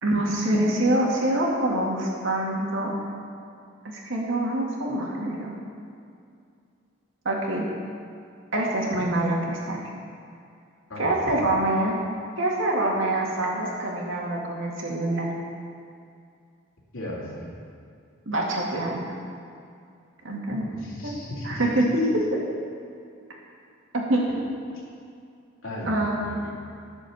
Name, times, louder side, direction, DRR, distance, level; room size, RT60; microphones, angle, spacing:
voice 1, 0.0-3.0 3.8-5.5 7.2-7.7 8.5-9.9 11.0-12.0 12.4-15.3 18.3-19.1 20.2-20.6 21.0-22.4 23.9-24.2 25.8-26.3, right 1 dB, 65° right, -2 dB, 2.2 m, -25 dB
voice 2, 10.9-11.3 16.9-17.5 20.5-21.6 25.6-26.6, left 1 dB, 80° left, -4 dB, 2.8 m, -36 dB
11.0 x 7.0 x 7.1 m, 2.4 s
head